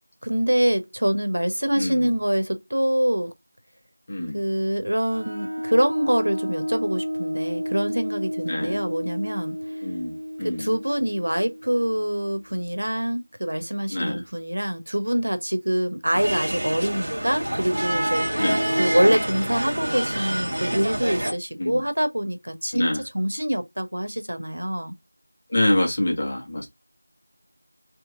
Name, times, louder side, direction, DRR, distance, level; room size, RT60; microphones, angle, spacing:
voice 1, 0.2-3.3 4.3-9.8 10.4-18.4 18.8-24.9, equal, 90° right, 1.0 m, -25 dB
voice 2, 1.8-2.1 4.1-4.4 8.5-8.8 9.8-10.7 13.9-14.2 18.4-18.6 19.0-19.2 21.6-21.8 22.7-23.0 25.5-26.6, left 1 dB, 25° left, 1.0 m, -25 dB
sound 1, 5.0-12.4, equal, 65° right, 1.3 m, -32 dB
sound 2, 16.1-21.3, right 1 dB, 45° right, 1.3 m, -26 dB
3.1 x 3.0 x 3.6 m
figure-of-eight pair, 175°, 0 cm